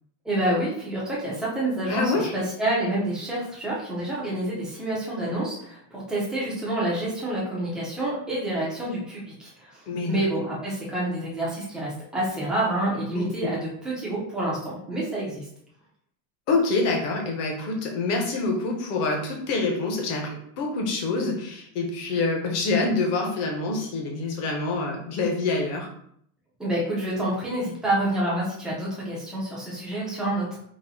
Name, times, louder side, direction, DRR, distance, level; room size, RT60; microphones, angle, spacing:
voice 1, 0.2-15.5 26.6-30.6, right 1 dB, ahead, -7 dB, 0.4 m, -28 dB
voice 2, 1.9-2.3 9.9-10.2 13.1-13.3 16.5-25.9, left 3 dB, 35° left, 1 dB, 0.8 m, -26 dB
4.1 x 2.6 x 3.9 m, 0.68 s
supercardioid pair, 175°, 47 cm